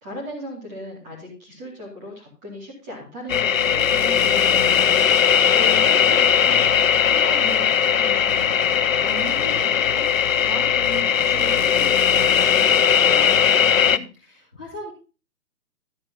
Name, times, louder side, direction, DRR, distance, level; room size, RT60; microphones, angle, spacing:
voice 1, 0.0-4.9 5.5-6.6 7.1-10.1 10.4-13.3, equal, 10° right, -2 dB, 2.4 m, -36 dB
sound 1, 3.3-14.0, left 8 dB, 60° left, 0.5 m, -18 dB
voice 2, 13.7-14.9, left 1 dB, 5° left, -13 dB, 0.9 m, -38 dB
12.5 x 7.3 x 3.8 m, 0.32 s
hypercardioid pair, 175°, 47 cm